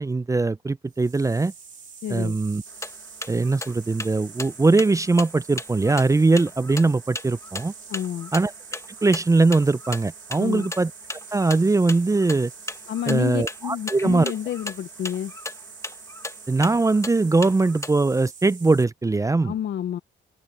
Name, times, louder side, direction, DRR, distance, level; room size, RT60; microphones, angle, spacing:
voice 1, 0.0-1.5 2.1-2.6 3.3-7.7 8.3-8.5 9.0-10.9 11.3-12.5 13.1-14.3 16.5-19.5, right 3 dB, 15° right, 0.5 m, -21 dB
sound 1, 0.9-18.8, right 6 dB, 40° right, 4.4 m, -45 dB
voice 2, 2.0-2.4 7.9-8.3 10.4-10.7 12.9-15.3 19.4-20.0, left 10 dB, 65° left, 0.9 m, -29 dB
sound 2, 2.7-17.9, left 2 dB, 15° left, 1.4 m, -36 dB
open air
cardioid pair, 90°, 20 cm